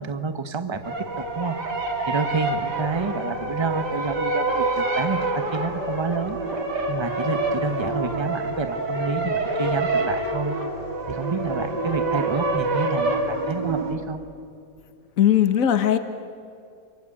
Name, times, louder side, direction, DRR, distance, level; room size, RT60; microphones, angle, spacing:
voice 1, 0.0-1.6 2.1-6.4 6.9-10.5 11.1-14.2, right 4 dB, 20° right, 9 dB, 1.0 m, -29 dB
sound 1, 0.8-14.0, right 2 dB, 75° right, 3.8 m, -27 dB
voice 2, 15.2-16.0, left 10 dB, 55° left, 9 dB, 1.6 m, -18 dB
28.0 x 24.0 x 8.5 m, 2.5 s
omnidirectional pair, 1.8 m